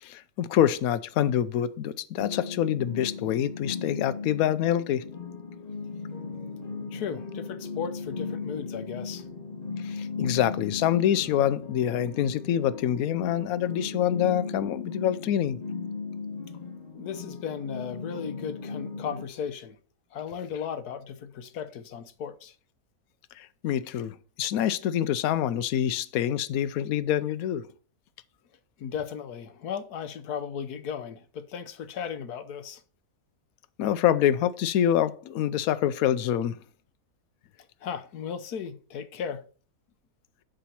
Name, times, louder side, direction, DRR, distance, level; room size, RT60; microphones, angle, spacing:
voice 1, 0.0-5.0 9.8-15.6 23.4-27.7 33.8-36.6, left 10 dB, 75° left, 1.1 m, -26 dB
sound 1, 2.2-19.2, left 4 dB, 30° left, 1.2 m, -37 dB
voice 2, 6.9-9.3 16.9-19.8 20.1-22.5 28.8-32.8 37.8-39.4, left 7 dB, 90° left, 1.5 m, -36 dB
11.5 x 5.1 x 4.3 m
omnidirectional pair, 1.6 m